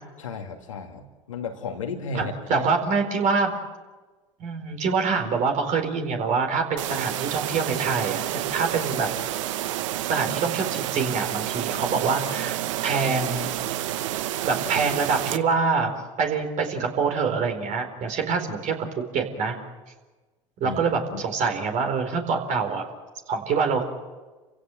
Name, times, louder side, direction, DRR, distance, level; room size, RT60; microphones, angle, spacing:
voice 1, 0.2-2.7 20.6-20.8 21.1-21.2, left 4 dB, 90° left, 2 dB, 2.5 m, -34 dB
voice 2, 2.1-3.6 4.4-8.2 8.5-9.1 10.1-13.5 14.4-15.9 16.2-19.6 20.6-22.9 23.3-23.8, right 5 dB, 50° right, 4 dB, 4.3 m, -25 dB
sound 1, 6.8-15.4, right 13 dB, 75° right, 0.9 m, -29 dB
29.0 x 16.5 x 7.9 m, 1.3 s
hypercardioid pair, 70°, 16 cm